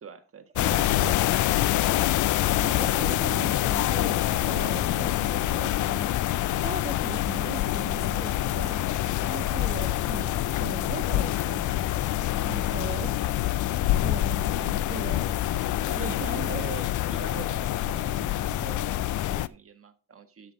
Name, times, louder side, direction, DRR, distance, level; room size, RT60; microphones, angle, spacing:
voice 1, 0.0-1.0 12.2-12.7 15.9-20.5, right 6 dB, 45° right, 1.4 m, -44 dB
sound 1, 0.6-19.5, left 15 dB, 75° left, 0.5 m, -26 dB
voice 2, 0.6-1.3 1.7-1.8 2.6-12.1 12.5-13.6 14.0-15.4 15.9-16.6, right 6 dB, 25° right, 0.4 m, -39 dB
sound 2, 1.4-19.3, left 1 dB, 55° left, 3.1 m, -42 dB
12.5 x 5.3 x 3.6 m
cardioid pair, 75°, 30 cm